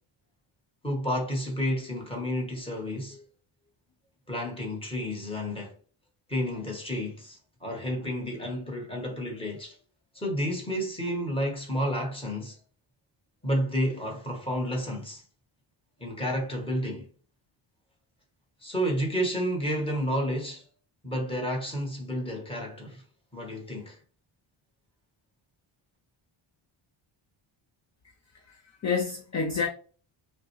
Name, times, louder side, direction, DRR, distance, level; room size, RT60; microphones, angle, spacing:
voice 1, 0.8-3.2 4.3-5.7 6.3-9.8 10.1-12.6 13.4-15.2 16.0-17.1 18.6-20.6 21.0-23.0 23.3-24.0, equal, 10° left, 1.3 m, -31 dB
voice 2, 28.5-29.7, left 5 dB, 35° left, 0.6 m, -29 dB
5.6 x 2.2 x 3.1 m
wide cardioid pair, 155°, 50 cm